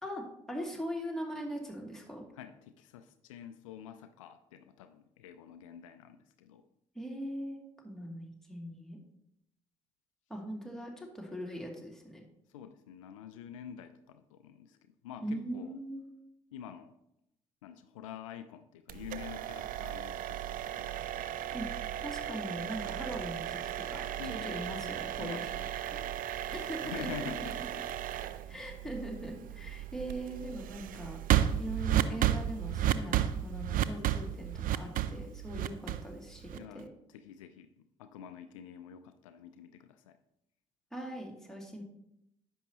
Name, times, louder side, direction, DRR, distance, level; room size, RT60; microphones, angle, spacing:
voice 1, 0.0-2.2 6.9-9.0 10.3-12.2 15.2-16.1 21.5-21.7 22.0-25.5 25.9-26.0 26.5-27.3 28.5-31.2 31.6-36.9 40.9-41.8, right 1 dB, 5° left, -1 dB, 2.5 m, -41 dB
voice 2, 2.3-6.6 12.5-15.8 16.5-17.0 17.6-21.3 24.2-24.6 25.2-25.7 26.8-27.8 36.6-40.2, left 9 dB, 80° left, 10 dB, 0.4 m, -47 dB
sound 1, 18.9-36.8, right 11 dB, 60° right, 0.5 m, -34 dB
10.5 x 7.1 x 2.9 m, 0.79 s
figure-of-eight pair, 40°, 16 cm